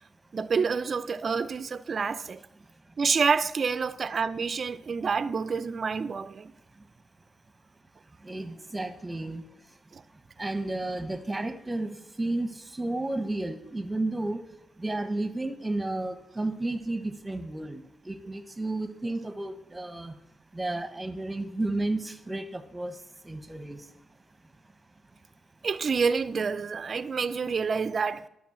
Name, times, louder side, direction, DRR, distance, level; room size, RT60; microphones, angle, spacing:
voice 1, 0.3-2.4 3.0-6.5 9.9-10.0 25.6-28.3, right 5 dB, 45° right, 0.5 m, -28 dB
voice 2, 8.2-9.4 10.4-11.9 12.2-14.4 14.8-20.1 20.5-22.9 23.2-23.8, right 2 dB, 15° right, 1.1 m, -32 dB
10.5 x 6.2 x 7.3 m
cardioid pair, 105°, 0 cm